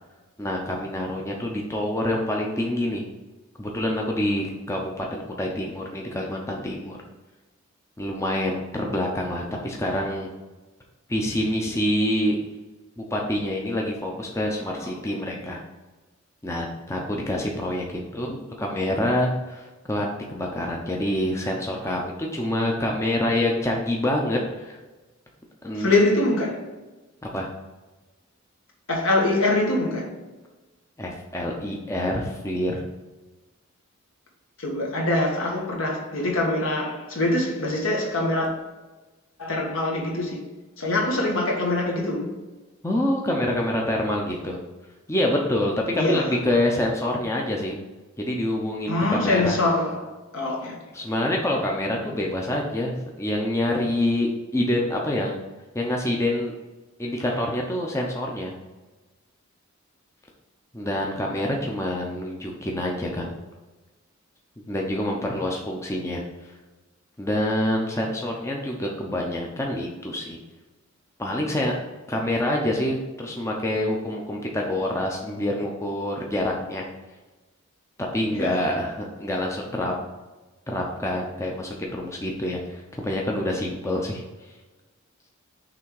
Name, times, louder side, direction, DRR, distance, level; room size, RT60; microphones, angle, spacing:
voice 1, 0.4-3.0 3.6-7.0 8.0-10.3 11.1-12.4 13.0-15.6 16.4-24.8 25.6-26.0 27.3-27.5 31.0-32.8 42.8-44.6 45.1-47.8 48.2-49.5 50.9-55.4 55.7-56.5 57.0-58.5 60.7-63.3 64.7-66.2 67.2-70.4 71.2-71.7 72.1-76.8 78.0-79.9 80.7-84.2, left 1 dB, 15° left, 0.7 m, -26 dB
voice 2, 25.8-26.7 28.9-30.1 34.6-38.5 39.4-40.4 40.8-42.3 46.0-46.4 48.9-50.8 61.2-61.4 78.3-78.7, left 2 dB, 70° left, 1.7 m, -24 dB
6.0 x 3.5 x 4.8 m
head